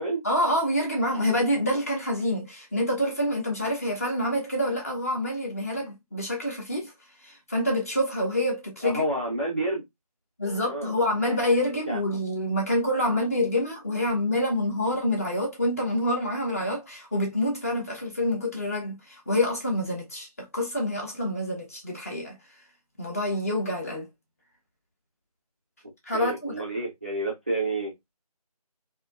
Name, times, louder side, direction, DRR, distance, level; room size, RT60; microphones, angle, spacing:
voice 1, 0.2-6.9 7.2-9.0 10.4-22.3 23.0-24.1 26.1-26.5, left 1 dB, 20° left, 1.0 m, -27 dB
voice 2, 8.8-9.8 10.6-10.9 11.9-12.0 26.1-27.9, right 1 dB, 15° right, 0.6 m, -29 dB
7.6 x 2.8 x 2.4 m
figure-of-eight pair, 165°, 20 cm